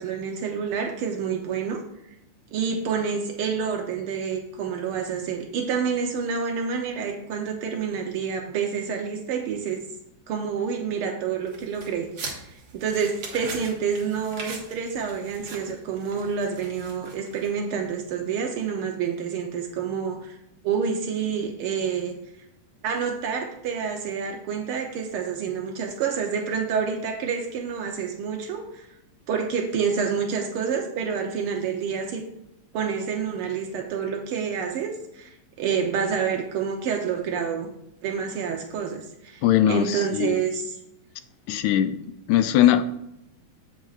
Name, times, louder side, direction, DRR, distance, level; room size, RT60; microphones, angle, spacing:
voice 1, 0.0-1.8 2.5-9.8 10.3-20.4 20.6-22.2 22.8-28.9 29.3-32.2 32.7-37.7 38.0-40.8, right 6 dB, 85° right, 2 dB, 1.2 m, -28 dB
sound 1, 11.5-17.7, right 4 dB, 55° right, 2.4 m, -41 dB
voice 2, 39.4-40.4 41.5-42.0 42.3-42.9, left 11 dB, 80° left, 10 dB, 1.8 m, -20 dB
15.0 x 6.2 x 2.4 m, 0.85 s
omnidirectional pair, 3.5 m